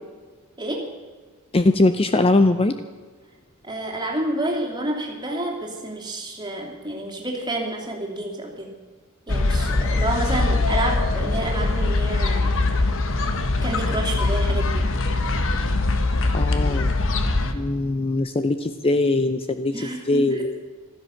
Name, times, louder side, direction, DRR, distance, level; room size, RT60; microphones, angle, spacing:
voice 1, 0.6-0.9 3.6-8.7 9.3-12.6 13.6-14.9 19.7-20.5, right 1 dB, 20° right, 0 dB, 2.9 m, -29 dB
voice 2, 1.5-2.8 16.3-16.9 17.5-20.6, left 2 dB, 25° left, 10 dB, 0.6 m, -21 dB
sound 1, 9.3-17.5, left 2 dB, 65° left, 1.4 m, -22 dB
15.0 x 13.0 x 7.2 m, 1.4 s
head